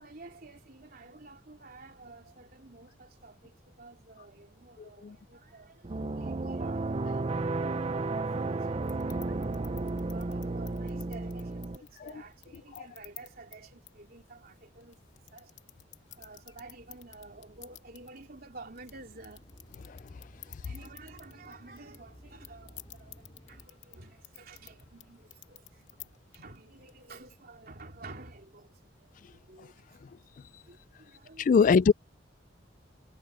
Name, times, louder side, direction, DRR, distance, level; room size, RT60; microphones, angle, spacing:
voice 1, 0.0-9.6 10.1-15.0 15.3-15.5 16.1-19.4 20.4-30.0 30.7-31.8, right 3 dB, 55° right, 3.3 m, -51 dB
voice 2, 4.8-5.2 7.6-7.9 19.9-20.0 29.6-29.7 31.4-31.9, left 5 dB, 45° left, 0.3 m, -24 dB
sound 1, 5.8-11.8, right 3 dB, 35° right, 0.6 m, -33 dB
sound 2, 8.8-27.3, left 15 dB, 80° left, 2.6 m, -55 dB
sound 3, 16.2-23.7, equal, 30° left, 4.9 m, -56 dB
head